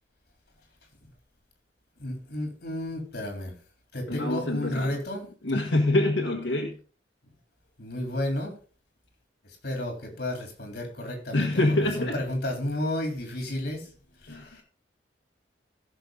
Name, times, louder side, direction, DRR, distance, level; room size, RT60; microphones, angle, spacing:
voice 1, 2.0-3.5 3.9-5.2 7.8-8.6 9.6-11.5 12.0-13.9 14.2-14.6, left 1 dB, 60° left, 2 dB, 3.7 m, -32 dB
voice 2, 4.1-5.0 5.4-6.8 11.3-12.2 14.3-14.5, left 1 dB, 90° left, 1 dB, 1.8 m, -25 dB
16.0 x 6.7 x 3.9 m, 0.39 s
head